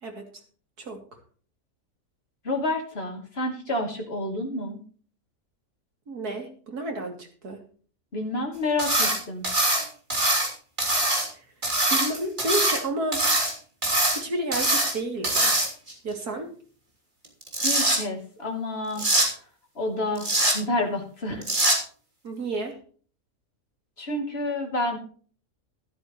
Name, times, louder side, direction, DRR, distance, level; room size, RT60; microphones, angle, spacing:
voice 1, 2.4-4.8 8.1-9.4 17.6-19.0 19.7-20.3 20.5-21.4 24.0-25.0, left 2 dB, 40° left, 2 dB, 3.1 m, -29 dB
voice 2, 6.1-7.6 11.3-11.4 11.9-13.2 14.1-15.6 16.0-16.5 22.2-22.8, right 1 dB, 85° right, 3 dB, 3.3 m, -31 dB
sound 1, 8.8-9.2 9.4-10.5 10.8-11.3 11.6-12.8 13.1-13.5 13.8-14.2 14.5-14.9 15.2-15.9 17.2-18.0 19.0-19.3 20.2-20.6 21.4-21.8, right 1 dB, 30° right, 3.2 m, -23 dB
13.0 x 12.5 x 3.1 m, 0.43 s
omnidirectional pair, 1.6 m